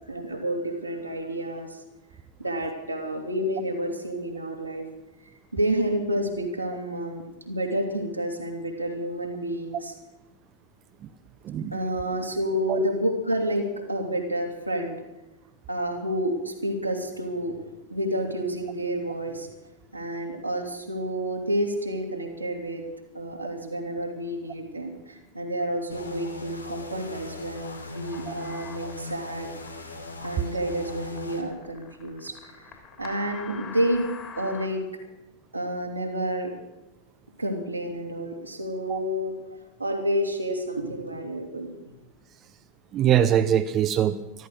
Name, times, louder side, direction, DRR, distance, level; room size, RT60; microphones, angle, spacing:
voice 1, 0.1-1.8 2.4-4.8 5.5-9.9 11.7-15.0 15.7-17.6 17.9-19.5 19.9-22.8 23.1-29.5 30.2-32.7 33.0-34.1 34.4-34.8 35.5-36.5 37.4-39.3 39.8-41.8, right 1 dB, 85° right, 1 dB, 2.7 m, -29 dB
sound 1, 25.9-31.4, left 2 dB, 80° left, 1.7 m, -39 dB
sound 2, 27.5-34.7, left 6 dB, 30° left, 3.0 m, -44 dB
voice 2, 42.9-44.5, right 10 dB, 30° right, 10 dB, 0.6 m, -23 dB
14.0 x 13.5 x 6.5 m, 1.0 s
figure-of-eight pair, 90°, 0 cm